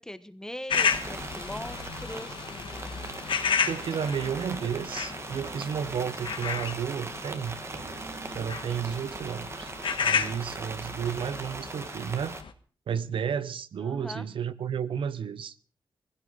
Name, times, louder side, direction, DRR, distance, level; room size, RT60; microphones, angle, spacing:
voice 1, 0.0-2.5 13.8-14.2, left 1 dB, 5° left, 1.2 m, -40 dB
sound 1, 0.7-12.5, left 6 dB, 80° left, 1.5 m, -33 dB
sound 2, 0.7-12.4, right 3 dB, 30° right, 1.4 m, -40 dB
sound 3, 3.7-10.5 11.1-11.2, right 5 dB, 70° right, 2.3 m, -50 dB
voice 2, 3.7-7.6 8.3-9.7 10.0-12.4 12.9-15.6, right 7 dB, 85° right, 0.9 m, -32 dB
20.5 x 16.0 x 4.0 m
wide cardioid pair, 135°, 9 cm